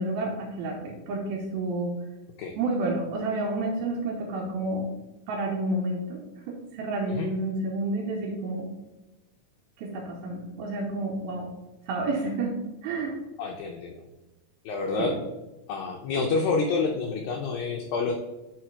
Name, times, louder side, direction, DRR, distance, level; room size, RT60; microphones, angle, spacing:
voice 1, 0.0-2.0 2.6-4.9 5.3-6.2 6.5-8.7 9.8-11.5 11.9-13.2 15.0-15.2, right 2 dB, 80° right, 1 dB, 2.3 m, -30 dB
voice 2, 13.4-14.0 14.7-15.2 15.7-18.1, left 4 dB, 80° left, 1 dB, 2.1 m, -28 dB
6.1 x 4.7 x 4.4 m, 1.1 s
omnidirectional pair, 4.7 m